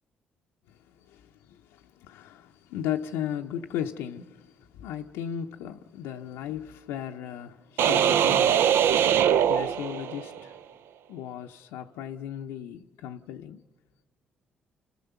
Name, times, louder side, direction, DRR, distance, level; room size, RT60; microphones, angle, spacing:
voice 1, 0.7-10.6 11.1-13.6, left 10 dB, 80° left, 0.6 m, -37 dB
sound 1, 7.8-10.4, right 9 dB, 70° right, 0.5 m, -22 dB
29.5 x 14.0 x 6.8 m
hypercardioid pair, 55°, 4 cm